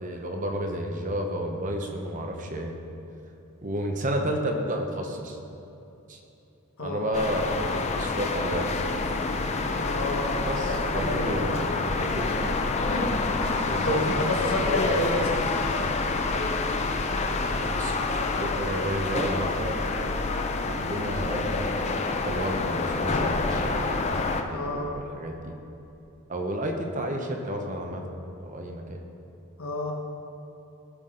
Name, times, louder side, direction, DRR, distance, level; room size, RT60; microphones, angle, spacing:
voice 1, 0.0-2.7 3.6-5.4 6.1-6.2 6.8-8.7 10.4-11.5 12.0-12.5 13.7-14.2 14.6-15.0 17.5-18.0 18.4-19.9 20.6-21.7 22.2-24.0 24.3-25.5 26.3-28.0 28.4-29.0, equal, 35° right, 3 dB, 0.8 m, -31 dB
voice 2, 6.8-7.2 9.8-10.4 10.9-11.8 12.9-13.1 13.4-15.4 24.5-24.9 29.6-30.0, left 2 dB, 70° left, 1 dB, 1.3 m, -30 dB
sound 1, 7.1-24.4, left 3 dB, 30° left, 0.5 m, -27 dB
14.5 x 5.9 x 3.8 m, 2.9 s
head